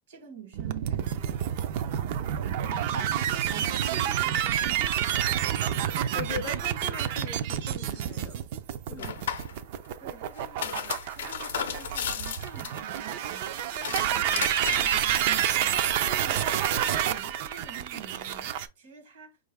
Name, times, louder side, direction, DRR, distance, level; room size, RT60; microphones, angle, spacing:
voice 1, 0.1-2.0 2.4-3.2 3.4-5.6 8.9-9.2 10.0-13.5 13.9-19.4, right 7 dB, 70° right, 1.3 m, -47 dB
sound 1, 0.5-18.7, right 10 dB, 55° right, 0.4 m, -29 dB
voice 2, 6.1-8.4 8.9-9.1, left 7 dB, 30° left, 0.4 m, -40 dB
sound 2, 9.0-9.5 10.4-13.0 13.7-15.0, left 8 dB, 85° left, 0.5 m, -34 dB
4.6 x 2.4 x 3.3 m
supercardioid pair, 150°, 0 cm